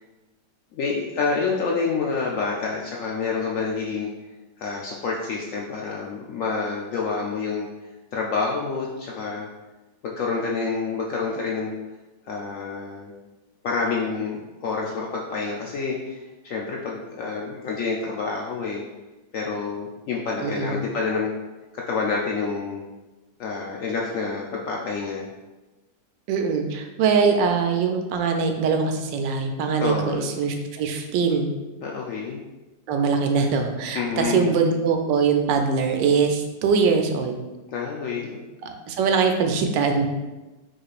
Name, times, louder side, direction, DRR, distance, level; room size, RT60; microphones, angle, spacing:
voice 1, 0.7-4.1 4.6-7.7 8.1-9.5 10.0-11.7 12.3-13.1 13.6-18.8 19.3-21.3 21.7-22.8 23.4-25.3 29.8-30.3 31.8-32.4 33.9-34.6 37.7-38.4, left 4 dB, 85° left, -2 dB, 0.7 m, -28 dB
voice 2, 20.4-20.8 26.3-31.5 32.9-37.4 38.6-40.1, right 5 dB, 85° right, 5 dB, 1.3 m, -22 dB
4.8 x 4.2 x 2.4 m, 1.1 s
omnidirectional pair, 1.9 m